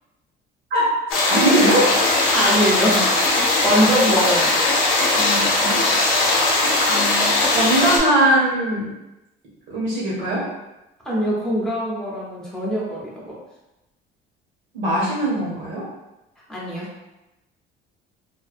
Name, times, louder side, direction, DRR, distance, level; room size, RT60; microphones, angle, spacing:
voice 1, 0.7-1.9 3.7-3.9 5.1-5.8 6.9-8.9 9.7-10.4 14.7-15.9, right 1 dB, 70° right, -6 dB, 1.4 m, -21 dB
sound 1, 1.1-8.0, left 2 dB, 85° left, 0.6 m, -19 dB
voice 2, 2.3-3.1 3.4-4.5 11.0-13.4 16.5-16.9, equal, 5° left, -7 dB, 0.8 m, -22 dB
2.6 x 2.2 x 2.4 m, 0.97 s
cardioid pair, 125°, 21 cm